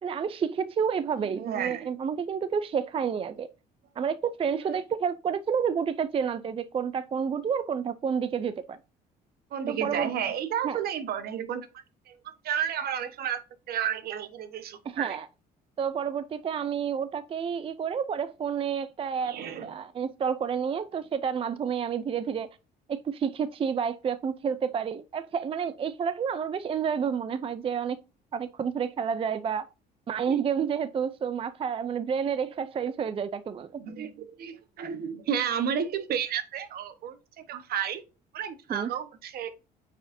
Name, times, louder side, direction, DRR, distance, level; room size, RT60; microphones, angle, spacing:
voice 1, 0.0-3.5 4.0-8.8 9.7-10.1 10.6-10.8 14.9-15.3 15.8-22.5 22.9-28.0 28.3-29.7 30.1-33.8 38.7-38.9, right 7 dB, 35° right, 0.5 m, -30 dB
voice 2, 1.2-1.9 4.6-4.8 9.5-12.2 12.4-13.4 13.7-15.2 19.2-19.7 30.2-30.4 33.8-38.0 38.3-39.5, right 8 dB, 65° right, 1.2 m, -32 dB
8.7 x 4.9 x 2.7 m
cardioid pair, 110°, 17 cm